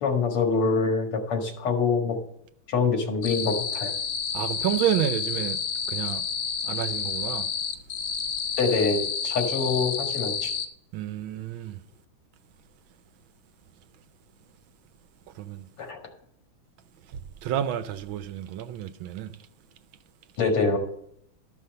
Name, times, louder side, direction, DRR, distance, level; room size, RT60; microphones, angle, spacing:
voice 1, 0.0-2.2 2.7-3.9 8.6-10.5 15.8-16.0 20.4-20.8, left 4 dB, 90° left, 2.6 m, -25 dB
sound 1, 3.2-10.7, left 6 dB, 65° left, 1.7 m, -30 dB
voice 2, 4.3-5.6 5.9-6.2 6.7-7.4 10.9-11.7 15.4-15.6 17.4-19.3, right 11 dB, 75° right, 1.3 m, -29 dB
12.5 x 5.7 x 6.5 m
omnidirectional pair, 2.4 m